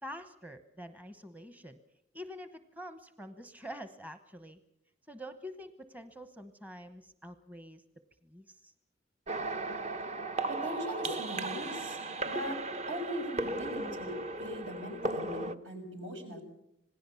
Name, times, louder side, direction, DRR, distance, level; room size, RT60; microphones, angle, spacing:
voice 1, 0.0-1.8 2.1-4.6 5.1-7.8 8.2-8.7, equal, 10° right, 9 dB, 1.0 m, -46 dB
sound 1, 9.3-15.5, right 2 dB, 35° right, 1.0 m, -36 dB
voice 2, 10.6-12.0 12.2-12.6 12.9-16.5, equal, 75° right, 4 dB, 6.5 m, -40 dB
27.0 x 18.5 x 7.0 m, 0.79 s
head